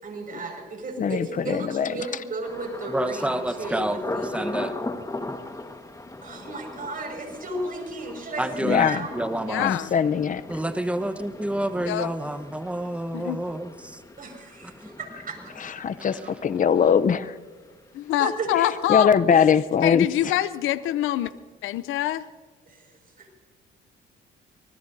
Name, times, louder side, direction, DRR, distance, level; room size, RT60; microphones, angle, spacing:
voice 1, 0.0-4.6 6.2-9.2 14.2-15.7 16.2-16.3 18.2-18.5 22.7-22.9 23.2-23.4, right 2 dB, 45° right, 2 dB, 5.8 m, -34 dB
voice 2, 1.0-2.1 8.6-9.1 9.6-10.4 15.6-17.4 18.9-20.1, left 7 dB, 40° left, 13 dB, 0.7 m, -21 dB
Thunder, 2.4-18.2 18.5-19.1 19.5-19.8, left 2 dB, 15° left, 1.6 m, -39 dB
voice 3, 2.9-4.7 8.4-9.7 10.5-14.0 14.7-15.0 16.0-16.4, right 1 dB, 5° right, 9 dB, 1.1 m, -29 dB
voice 4, 9.5-9.9 11.9-12.1 13.1-13.4 17.9-19.4 19.8-21.3 21.6-22.3, left 13 dB, 90° left, 15 dB, 0.6 m, -25 dB
25.5 x 20.5 x 2.7 m, 1.4 s
cardioid pair, 90°, 20 cm